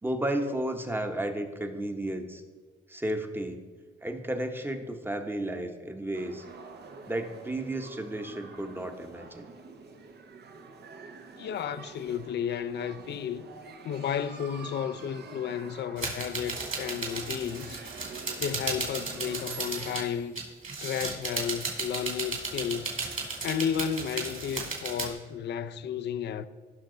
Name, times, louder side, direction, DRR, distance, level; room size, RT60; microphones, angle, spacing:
voice 1, 0.0-2.4 2.9-3.6 4.0-6.4 7.0-9.5, right 1 dB, 10° right, 1.0 m, -33 dB
sound 1, 6.1-20.0, right 4 dB, 55° right, 1.1 m, -47 dB
voice 2, 11.4-13.5 13.8-17.8 18.4-20.4 20.8-23.0 23.4-26.5, left 8 dB, 60° left, 0.5 m, -33 dB
sound 2, 16.0-20.0 20.4-25.1, right 4 dB, 40° right, 2.6 m, -35 dB
15.5 x 5.8 x 3.9 m
cardioid pair, 90°, 20 cm